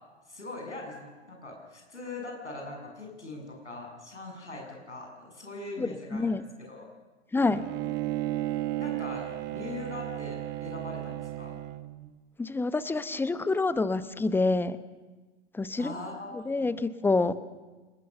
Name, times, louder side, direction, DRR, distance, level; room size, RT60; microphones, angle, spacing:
voice 1, 0.3-6.3 6.6-6.9 8.8-11.6 15.8-16.8, left 2 dB, 80° left, 1 dB, 7.6 m, -41 dB
voice 2, 5.8-6.4 7.3-7.6 12.4-14.8 15.5-15.9 16.3-17.4, left 3 dB, 5° left, 14 dB, 1.0 m, -27 dB
Bowed string instrument, 7.5-12.1, right 15 dB, 30° right, 1.3 m, -34 dB
27.0 x 20.5 x 6.8 m, 1.3 s
figure-of-eight pair, 95°, 34 cm